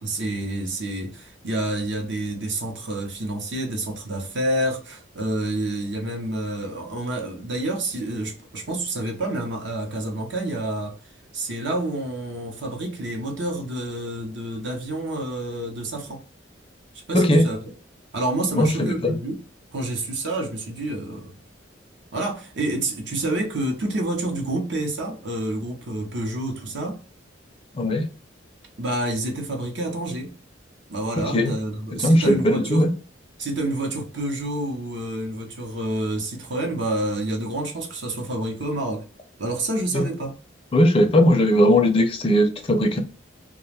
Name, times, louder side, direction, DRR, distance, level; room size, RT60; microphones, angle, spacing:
voice 1, 0.0-10.9 11.3-16.2 17.1-17.7 18.1-19.4 19.7-21.4 22.1-27.0 28.8-30.3 30.9-32.9 33.4-39.0 39.4-40.3, right 1 dB, 65° right, 0.7 m, -28 dB
voice 2, 18.6-19.1 27.7-28.0 31.2-31.5 31.9-32.9 39.9-40.0 40.7-43.0, equal, 30° left, 0.4 m, -19 dB
2.4 x 2.2 x 3.2 m
head